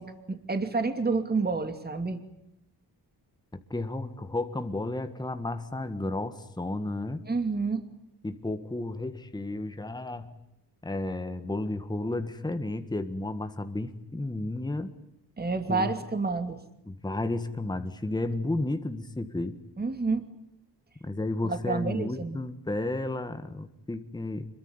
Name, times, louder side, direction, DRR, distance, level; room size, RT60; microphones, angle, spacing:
voice 1, 0.0-2.2 7.2-7.8 15.4-16.6 19.8-20.2 21.4-22.4, right 4 dB, 20° right, 8 dB, 2.7 m, -29 dB
voice 2, 3.7-7.2 8.2-10.4 10.8-14.9 15.7-15.9 16.8-19.6 21.0-24.5, left 2 dB, 10° left, 9 dB, 1.6 m, -32 dB
26.5 x 23.0 x 9.6 m, 0.82 s
wide cardioid pair, 135°, 41 cm